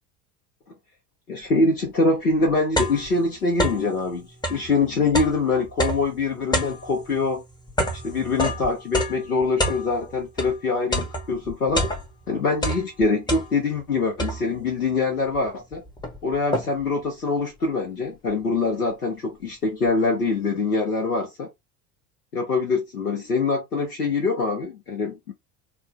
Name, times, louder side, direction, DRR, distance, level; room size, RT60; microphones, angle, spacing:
voice 1, 1.3-7.4 8.0-11.8 12.3-15.8 16.2-21.5 22.3-25.3, left 3 dB, 85° left, 0.8 m, -24 dB
sound 1, 1.9-2.0 2.3-4.0 4.3-10.6 10.9-12.3 12.6-13.8 14.2-14.7 15.3-15.4 15.7-17.0, equal, 10° left, 0.7 m, -28 dB
3.4 x 2.0 x 3.2 m
figure-of-eight pair, 65°, 45 cm